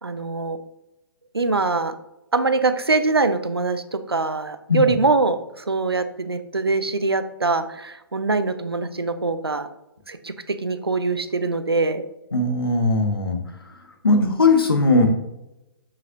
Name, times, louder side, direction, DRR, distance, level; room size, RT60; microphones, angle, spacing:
voice 1, 0.0-0.6 1.3-1.9 2.3-9.7 10.1-10.3 10.6-12.0, right 3 dB, 80° right, 10 dB, 0.7 m, -23 dB
voice 2, 12.3-13.4 14.0-15.2, left 3 dB, 75° left, 4 dB, 1.4 m, -18 dB
7.6 x 5.8 x 2.8 m, 0.92 s
figure-of-eight pair, 120°, 13 cm